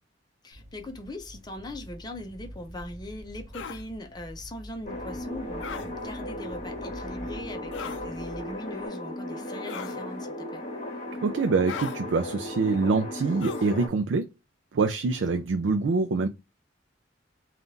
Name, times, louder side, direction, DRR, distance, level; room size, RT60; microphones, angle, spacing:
voice 1, 0.4-10.6 15.0-15.5, left 1 dB, 20° left, 0.6 m, -40 dB
sound 1, 0.5-8.9, equal, 35° right, 0.9 m, -46 dB
sound 2, 3.5-3.8 5.6-5.9 7.7-8.0 9.7-10.0 11.7-12.0 13.4-13.7, left 7 dB, 85° left, 0.4 m, -37 dB
sound 3, 4.9-13.9, left 1 dB, 40° left, 1.2 m, -36 dB
voice 2, 11.2-14.3 14.7-16.3, right 4 dB, 85° right, 0.4 m, -25 dB
3.6 x 2.4 x 2.6 m
head